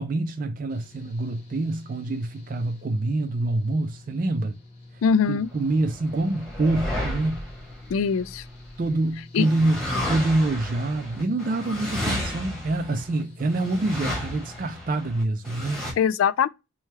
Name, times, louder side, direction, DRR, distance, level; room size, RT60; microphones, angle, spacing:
voice 1, 0.0-4.6 5.3-7.5 8.8-9.8 10.1-15.9, right 2 dB, 40° right, 0.4 m, -26 dB
Engine / Mechanical fan, 0.7-14.6, left 2 dB, 30° left, 1.5 m, -47 dB
voice 2, 5.0-5.5 7.9-8.4 9.3-9.5 16.0-16.5, left 6 dB, 80° left, 0.3 m, -22 dB
sound 1, 5.8-8.8 9.4-15.9, left 1 dB, ahead, 1.2 m, -32 dB
3.2 x 2.3 x 4.1 m
head